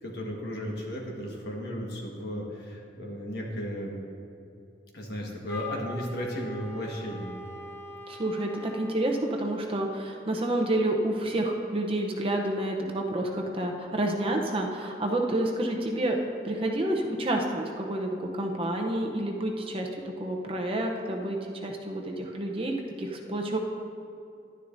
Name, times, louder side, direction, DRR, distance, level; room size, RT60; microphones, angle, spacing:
voice 1, 0.0-4.0 4.9-7.3, equal, 60° left, -1 dB, 1.5 m, -35 dB
Wind instrument woodwind instrument, 5.5-9.1, left 1 dB, 10° left, 1.1 m, -42 dB
voice 2, 8.1-16.2 16.4-23.6, right 1 dB, 30° right, 1 dB, 0.7 m, -29 dB
11.0 x 10.0 x 2.6 m, 2.6 s
head